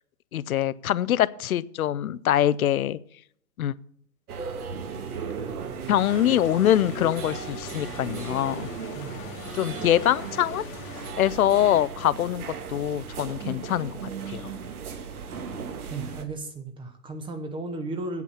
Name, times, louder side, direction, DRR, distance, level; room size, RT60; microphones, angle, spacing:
voice 1, 0.3-3.0 3.6-3.7 5.9-8.7 9.5-10.6 11.2-14.5, left 12 dB, 65° left, 20 dB, 0.6 m, -24 dB
sound 1, 4.3-16.2, right 6 dB, 65° right, 1.5 m, -36 dB
sound 2, 6.0-11.1, left 4 dB, 25° left, 1.3 m, -42 dB
voice 2, 15.9-18.2, right 2 dB, 10° right, 6 dB, 0.8 m, -34 dB
8.4 x 8.3 x 7.0 m, 0.66 s
hypercardioid pair, 120°, 47 cm